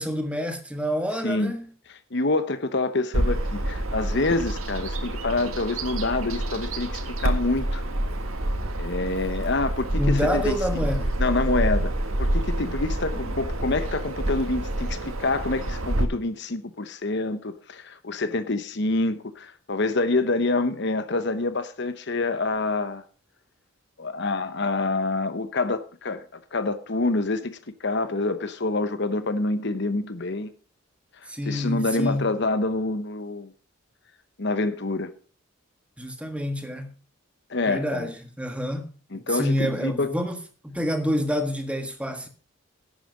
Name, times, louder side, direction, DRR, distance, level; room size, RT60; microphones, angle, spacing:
voice 1, 0.0-1.7 10.0-11.1 31.3-32.3 36.0-36.9 37.7-40.4 40.6-42.3, equal, 5° right, 1.5 m, -28 dB
voice 2, 1.2-1.6 1.9-7.8 8.8-10.6 11.2-11.9 12.2-23.0 24.0-26.2 26.5-30.5 31.5-33.5 34.4-35.1 37.5-38.1 39.1-40.1, left 2 dB, 55° left, 1.0 m, -27 dB
Bird vocalization bird call bird song, 3.1-16.0, right 1 dB, 85° right, 1.7 m, -27 dB
11.5 x 9.2 x 5.2 m
head